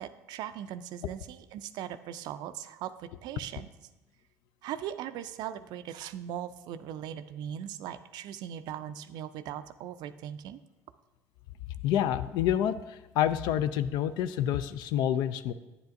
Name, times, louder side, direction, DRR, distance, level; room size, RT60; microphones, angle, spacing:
voice 1, 0.0-3.7 4.6-10.6, right 10 dB, 60° right, 12 dB, 0.4 m, -39 dB
voice 2, 11.8-15.5, left 10 dB, 60° left, 14 dB, 0.3 m, -28 dB
9.4 x 7.9 x 2.5 m, 1.0 s
hypercardioid pair, 55°, 8 cm